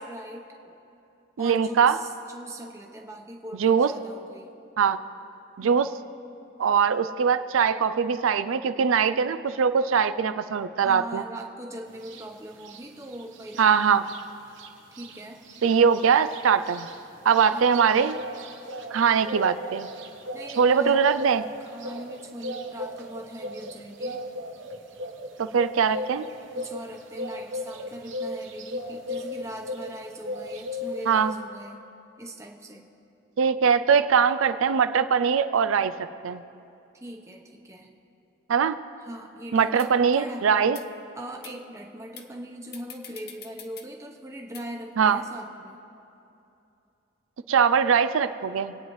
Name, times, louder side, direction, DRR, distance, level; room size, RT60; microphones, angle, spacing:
voice 1, 0.1-0.7 1.4-4.5 5.6-6.0 10.8-14.2 14.9-15.4 17.5-17.8 20.3-21.0 21.6-24.2 26.5-31.8 32.2-32.9 36.9-37.9 39.0-40.5 41.2-45.8, right 1 dB, 15° right, 1 dB, 0.9 m, -40 dB
voice 2, 1.4-2.0 3.6-3.9 4.8-5.0 5.6-5.9 6.6-11.2 13.6-14.0 15.6-16.9 17.3-18.2 18.9-19.9 20.6-21.4 25.4-26.2 31.1-31.3 33.4-36.4 38.5-38.8 39.5-40.8 45.0-45.2 47.5-48.8, right 6 dB, 90° right, 12 dB, 0.4 m, -22 dB
sound 1, 12.0-12.2 12.6-14.2 14.5-14.7 14.9-30.0 30.2-31.3, left 1 dB, 70° right, 1.0 m, -36 dB
sound 2, 39.2-39.3 39.8-39.9 40.6-40.9 41.4-41.5 42.2-42.3 42.7-43.9 44.5-44.6, left 8 dB, 50° left, 0.8 m, -44 dB
26.0 x 9.2 x 3.2 m, 2.8 s
head